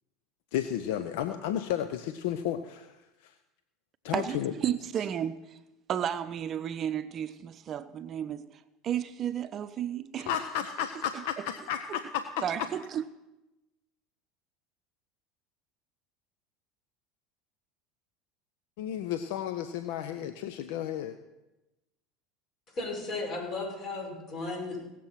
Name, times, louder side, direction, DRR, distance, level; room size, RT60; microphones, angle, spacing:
voice 1, 0.5-3.0 3.2-3.3 4.0-4.5 10.2-12.7 18.8-21.2, left 10 dB, 70° left, 0.7 m, -33 dB
voice 2, 4.1-5.6 5.9-8.5 8.8-10.3 12.4-13.0, right 9 dB, 40° right, 0.6 m, -32 dB
voice 3, 22.7-24.8, left 3 dB, 45° left, 6.1 m, -35 dB
17.5 x 7.5 x 5.8 m
hypercardioid pair, 90°, 0 cm